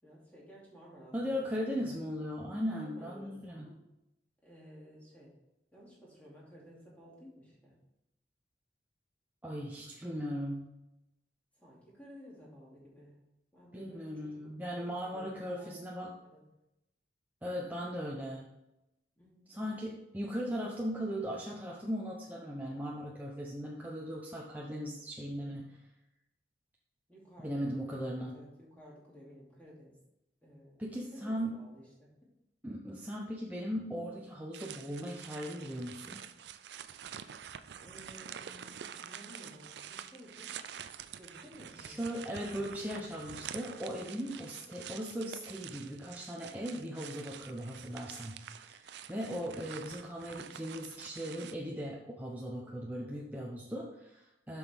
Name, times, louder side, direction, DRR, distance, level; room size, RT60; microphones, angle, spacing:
voice 1, 0.0-2.0 2.6-3.8 4.4-5.3 5.7-7.7 11.6-13.2 13.5-14.3 14.8-15.8 16.3-16.4 19.2-19.7 25.4-25.7 27.1-30.0 30.4-30.8 31.1-32.1 36.9-37.0 37.8-40.5 41.2-42.0, equal, 10° left, -6 dB, 2.6 m, -54 dB
voice 2, 1.1-3.7 9.4-10.7 13.7-16.1 17.4-18.5 19.5-25.8 27.4-28.3 30.8-31.5 32.6-36.2 41.8-54.6, equal, 10° right, -3 dB, 0.7 m, -38 dB
sound 1, 34.5-51.5, right 9 dB, 70° right, 0.4 m, -47 dB
7.6 x 6.0 x 3.6 m, 0.91 s
head